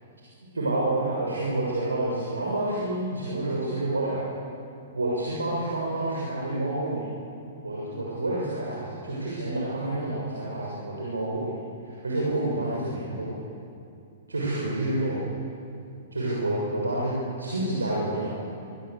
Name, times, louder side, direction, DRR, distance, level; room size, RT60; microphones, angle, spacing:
voice 1, 0.6-4.2 4.9-7.0 7.6-13.3 14.3-15.2 16.1-17.1 17.4-18.4, right 1 dB, 85° right, -6 dB, 6.7 m, -28 dB
26.0 x 23.5 x 8.2 m, 2.5 s
figure-of-eight pair, 115°, 0 cm